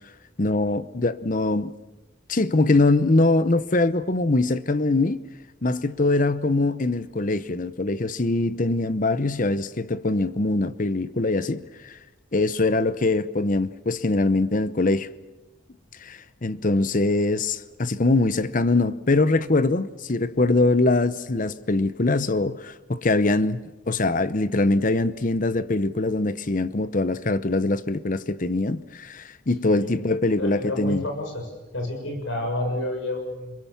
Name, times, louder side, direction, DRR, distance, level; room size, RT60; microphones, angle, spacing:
voice 1, 0.4-1.7 2.3-5.2 5.6-12.0 12.3-15.1 16.0-23.6 23.9-31.0, left 2 dB, 40° left, 0.8 m, -23 dB
voice 2, 29.6-31.5 31.7-33.6, left 1 dB, 70° left, 6.5 m, -30 dB
29.5 x 22.0 x 7.1 m
head